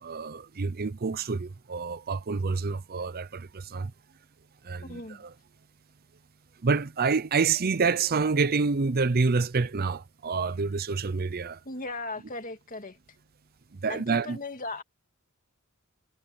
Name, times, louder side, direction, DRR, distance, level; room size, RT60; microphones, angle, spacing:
voice 1, 0.0-3.9 4.6-5.3 6.6-11.6 13.8-14.4, right 4 dB, 45° right, 0.6 m, -27 dB
voice 2, 4.8-5.2 11.6-13.0 13.9-14.8, left 2 dB, 40° left, 2.3 m, -37 dB
head